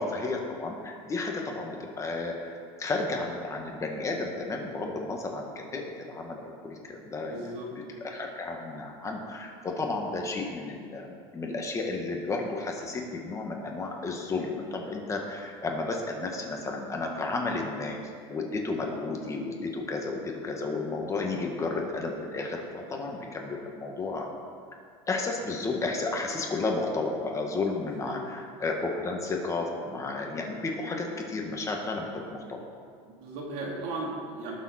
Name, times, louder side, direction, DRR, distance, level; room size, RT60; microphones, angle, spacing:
voice 1, 0.0-7.5 8.0-24.3 25.1-32.6, left 3 dB, 20° left, 1 dB, 1.8 m, -32 dB
voice 2, 7.3-8.0 28.0-28.2 33.1-34.5, right 2 dB, 70° right, -3 dB, 3.6 m, -36 dB
19.0 x 7.3 x 4.4 m, 2.1 s
supercardioid pair, 125°, 14 cm